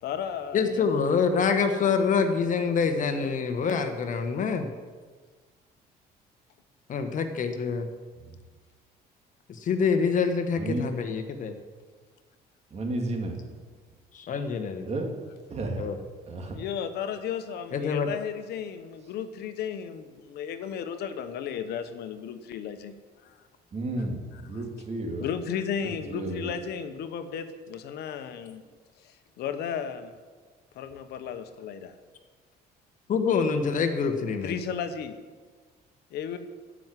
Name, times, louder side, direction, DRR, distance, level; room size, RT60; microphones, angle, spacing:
voice 1, 0.0-1.0 16.5-23.4 24.3-24.6 25.2-28.6 29.0-30.2 30.7-31.9 34.4-35.2 36.1-36.4, left 8 dB, 75° left, 9 dB, 1.1 m, -34 dB
voice 2, 0.5-4.7 6.9-7.8 9.5-11.6 14.1-14.9 15.8-16.0 17.7-18.1 33.1-34.5, left 5 dB, 50° left, 7 dB, 1.4 m, -26 dB
voice 3, 10.6-10.9 12.7-13.4 14.8-15.1 15.5-15.9 16.3-16.6 23.7-25.2 25.8-26.5, right 2 dB, 40° right, 2 dB, 2.7 m, -32 dB
14.0 x 6.2 x 9.2 m, 1.5 s
cardioid pair, 110°, 17 cm